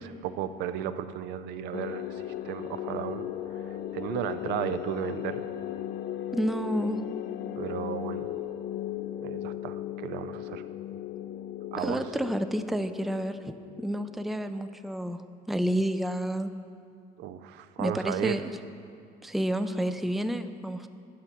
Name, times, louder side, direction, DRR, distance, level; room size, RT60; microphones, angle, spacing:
voice 1, 0.0-3.3 3.7-5.4 7.6-8.3 9.2-10.6 11.7-12.1 17.2-18.4, right 10 dB, 85° right, 12 dB, 0.4 m, -34 dB
sound 1, 1.7-14.5, left 11 dB, 70° left, 0.4 m, -37 dB
voice 2, 6.3-7.0 11.8-16.5 17.8-18.5 19.2-20.9, equal, ahead, 10 dB, 0.3 m, -30 dB
9.6 x 5.8 x 5.8 m, 2.3 s
cardioid pair, 110°, 17 cm